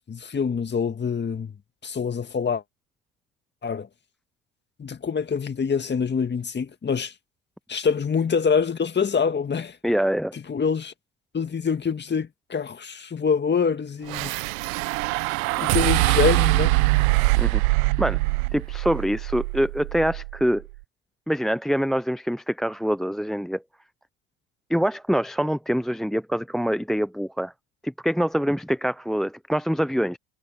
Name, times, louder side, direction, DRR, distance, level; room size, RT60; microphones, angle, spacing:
voice 1, 0.1-1.5 1.8-2.6 3.6-3.9 4.8-7.1 7.7-9.8 10.3-10.9 11.3-14.4 15.6-16.8, left 6 dB, 25° left, 1.9 m, -25 dB
voice 2, 9.8-10.3 17.4-17.6 18.0-18.2 18.5-20.6 21.3-23.6 24.7-27.5 27.8-30.2, equal, ahead, 0.7 m, -25 dB
sound 1, 14.1-20.5, right 24 dB, 80° right, 0.7 m, -23 dB
hypercardioid pair, 85°, 42 cm